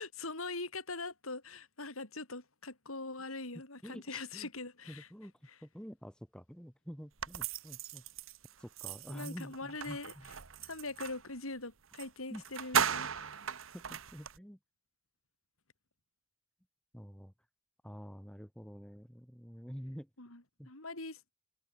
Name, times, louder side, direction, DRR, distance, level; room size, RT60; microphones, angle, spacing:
voice 1, 0.0-5.1 5.5-5.6 9.1-10.1 10.6-13.3 20.2-21.3, left 3 dB, 90° left, 5.2 m, -42 dB
voice 2, 3.8-4.5 4.9-5.3 5.6-8.0 8.6-10.3 12.3-12.4 13.7-14.6 16.9-17.3 17.8-20.1 20.6-20.7, equal, 5° left, 3.5 m, -48 dB
sound 1, 7.2-11.2 11.9-12.1 12.3-14.4, right 7 dB, 75° right, 1.2 m, -37 dB
head